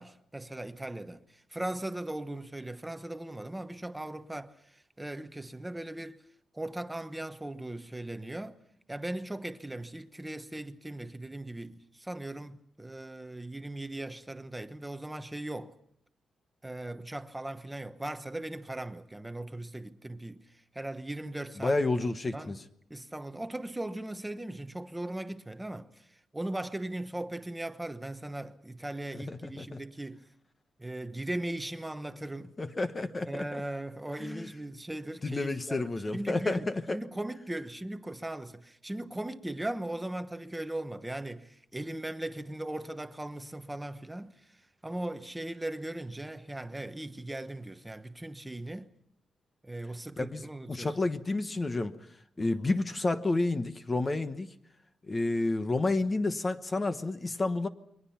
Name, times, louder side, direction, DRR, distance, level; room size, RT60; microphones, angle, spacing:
voice 1, 0.0-6.2 6.5-8.6 8.9-15.8 16.6-20.4 20.7-21.8 22.3-22.6 22.9-26.1 26.3-30.2 30.8-32.6 33.3-44.4 44.8-48.9 49.6-51.0 52.4-52.7, right 1 dB, 10° right, 1.0 m, -38 dB
voice 2, 21.6-22.6 29.1-29.8 32.6-33.6 34.2-34.5 35.2-37.0 50.2-52.0 52.4-54.5 55.1-57.7, left 2 dB, 20° left, 1.0 m, -30 dB
29.0 x 22.5 x 5.7 m
wide cardioid pair, 165°, 0 cm